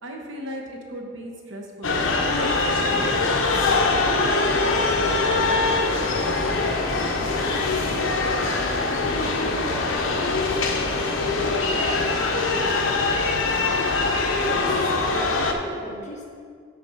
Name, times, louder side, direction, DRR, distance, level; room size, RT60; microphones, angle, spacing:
voice 1, 0.0-3.4 3.9-7.3, right 1 dB, 75° right, 1 dB, 1.0 m, -37 dB
sound 1, 1.8-15.5, left 3 dB, 90° left, 0.7 m, -23 dB
sound 2, 2.0-13.2, equal, 10° left, 1.0 m, -41 dB
sound 3, 2.9-3.3 3.6-3.8 4.2-4.5 4.8-5.1 5.4-5.7 6.0-6.3 6.6-6.9 7.2-7.5 7.8-8.1 8.4-8.7 9.0-9.3 9.6-9.7, equal, 25° right, 1.6 m, -38 dB
voice 2, 14.3-16.2, right 1 dB, 40° left, -3 dB, 1.3 m, -35 dB
5.9 x 5.0 x 5.7 m, 2.1 s
head